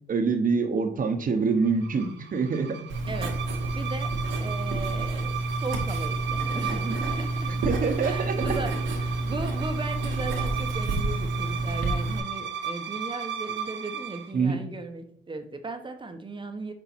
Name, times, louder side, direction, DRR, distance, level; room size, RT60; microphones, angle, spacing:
voice 1, 0.1-2.8 7.6-8.4 14.3-14.6, right 5 dB, 45° right, 6 dB, 1.2 m, -25 dB
sound 1, 1.6-14.3, right 7 dB, 65° right, 0.9 m, -36 dB
Writing, 2.9-12.2, right 2 dB, 85° right, 1.7 m, -29 dB
voice 2, 3.1-3.4 3.7-7.7 8.0-16.7, right 3 dB, 25° right, 6 dB, 1.1 m, -37 dB
7.1 x 4.5 x 4.5 m, 0.66 s
cardioid pair, 90°, 20 cm